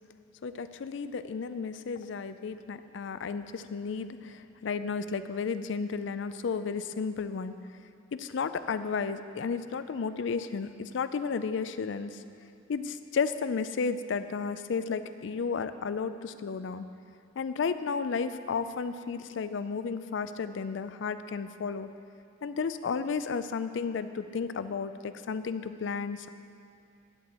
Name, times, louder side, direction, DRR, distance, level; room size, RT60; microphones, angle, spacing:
voice 1, 0.4-7.6 8.1-12.2 12.7-16.9 17.4-21.9 22.4-26.3, left 5 dB, 65° left, 12 dB, 0.4 m, -33 dB
11.0 x 4.3 x 7.8 m, 2.6 s
head